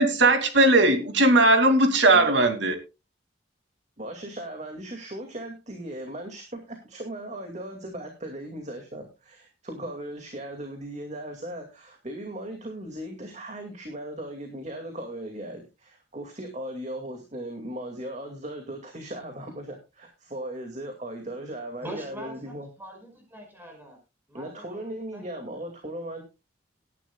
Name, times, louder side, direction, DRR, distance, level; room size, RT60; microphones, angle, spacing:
voice 1, 0.0-2.8, right 2 dB, 65° right, 2.5 m, -19 dB
voice 2, 4.0-22.7 24.3-26.2, right 1 dB, 35° right, 2.3 m, -37 dB
voice 3, 21.8-22.5 22.8-24.0 24.3-24.8 25.1-25.2, right 1 dB, 10° right, 5.3 m, -42 dB
18.0 x 11.0 x 2.3 m
head